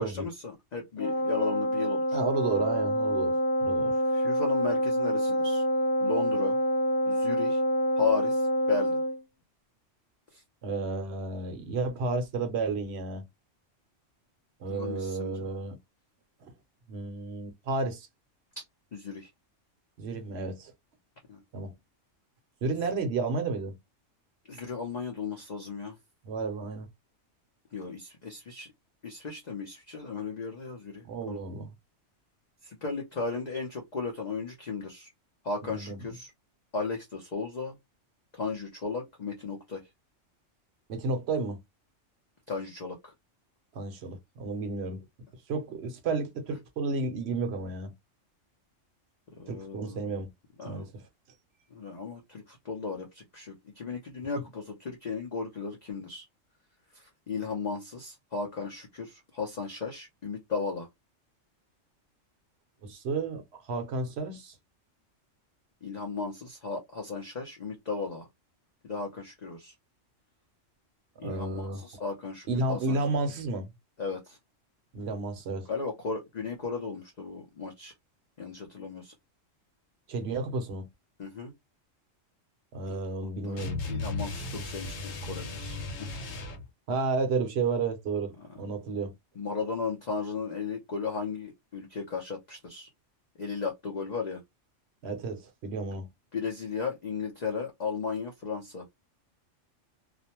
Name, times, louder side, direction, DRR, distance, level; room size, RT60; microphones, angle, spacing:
voice 1, 0.0-2.2 4.1-5.6 6.0-6.6 7.1-7.6 8.0-9.0 10.3-10.4 14.7-15.5 18.9-19.3 21.3-21.4 24.5-26.0 27.7-28.7 29.0-31.4 32.6-35.1 35.4-36.3 36.7-37.8 38.3-39.8 42.5-43.1 49.4-50.1 50.6-50.9 51.7-56.3 56.9-60.9 65.8-68.3 68.8-69.7 71.2-73.1 74.0-74.4 75.7-77.9 78.4-79.1 81.2-81.5 82.9-83.0 83.4-86.1 88.4-88.6 88.9-89.0 89.4-92.9 93.4-94.4 96.3-98.9, left 5 dB, 45° left, 0.6 m, -35 dB
Wind instrument woodwind instrument, 1.0-9.2, equal, 70° left, 0.9 m, -27 dB
voice 2, 2.1-3.9 10.6-13.2 14.6-15.8 16.4-16.5 16.9-18.1 20.0-20.7 21.5-21.7 22.6-23.8 26.3-26.9 31.0-31.7 35.6-36.0 40.9-41.6 43.7-45.0 45.5-47.9 49.5-50.3 50.6-50.9 62.8-64.6 71.2-71.9 72.5-73.7 74.9-75.7 80.1-80.9 82.7-83.8 86.9-88.3 88.6-89.1 95.0-96.1, right 3 dB, 60° right, 0.9 m, -32 dB
sound 1, 83.6-86.7, left 3 dB, 90° left, 1.1 m, -36 dB
2.4 x 2.1 x 2.8 m
omnidirectional pair, 1.3 m